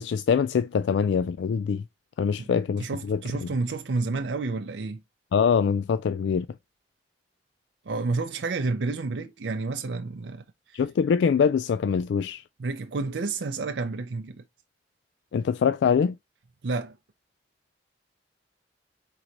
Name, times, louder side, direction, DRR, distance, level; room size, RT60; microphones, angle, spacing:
voice 1, 0.0-1.8 2.2-3.5 5.3-6.5 10.7-12.4 15.3-16.2, left 6 dB, 75° left, 0.3 m, -24 dB
voice 2, 2.8-5.0 7.9-10.8 12.6-14.4 16.6-17.0, right 3 dB, 70° right, 0.5 m, -30 dB
4.6 x 3.8 x 2.9 m
head